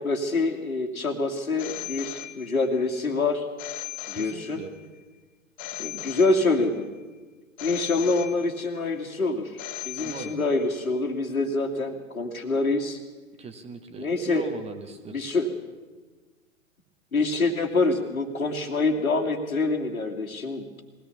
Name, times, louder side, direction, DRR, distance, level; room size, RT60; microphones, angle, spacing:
voice 1, 0.0-3.5 4.1-4.6 5.8-6.9 7.6-9.6 9.8-13.0 14.0-14.5 15.1-15.5 17.1-20.8, left 3 dB, 75° left, 3 dB, 2.6 m, -26 dB
Telephone, 1.6-2.8 3.6-4.8 5.6-6.8 7.6-8.8 9.6-10.8, left 14 dB, 35° left, 1.1 m, -38 dB
voice 2, 4.1-4.7 7.9-8.0 10.0-10.3 13.4-15.4, right 4 dB, 15° right, 7 dB, 1.5 m, -40 dB
22.0 x 17.5 x 7.1 m, 1.3 s
figure-of-eight pair, 105°, 42 cm